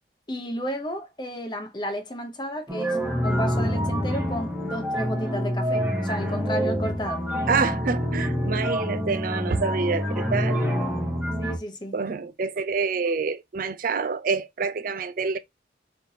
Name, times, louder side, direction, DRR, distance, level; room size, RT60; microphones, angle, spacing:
voice 1, 0.3-3.0 3.2-7.3 11.4-12.0, equal, 25° left, 0.8 m, -32 dB
sound 1, 2.7-11.6, equal, 5° right, 0.9 m, -26 dB
voice 2, 7.5-10.7 11.9-15.4, right 5 dB, 50° right, 0.4 m, -27 dB
4.1 x 3.2 x 2.7 m
head